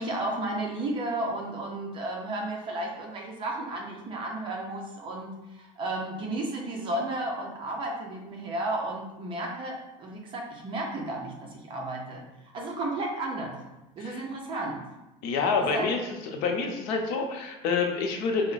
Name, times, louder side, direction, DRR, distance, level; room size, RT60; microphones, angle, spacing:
voice 1, 0.0-12.2 12.5-13.6 14.0-14.8 15.7-15.9, right 2 dB, 30° right, 0 dB, 0.6 m, -33 dB
voice 2, 15.2-16.0 16.3-18.5, left 4 dB, 70° left, 2 dB, 0.7 m, -27 dB
4.5 x 2.1 x 3.9 m, 0.99 s
cardioid pair, 165°, 17 cm